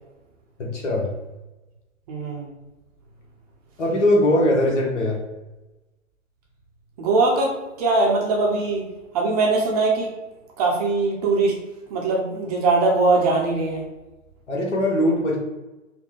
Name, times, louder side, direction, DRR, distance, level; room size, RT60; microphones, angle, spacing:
voice 1, 0.6-1.1 3.8-5.2 14.5-15.4, left 1 dB, 60° left, -2 dB, 1.4 m, -20 dB
voice 2, 2.1-2.5 7.0-8.8 9.1-10.1 10.6-11.5 11.9-13.8, right 3 dB, 30° right, -1 dB, 0.7 m, -21 dB
4.2 x 2.2 x 3.4 m, 1.0 s
figure-of-eight pair, 120°, 39 cm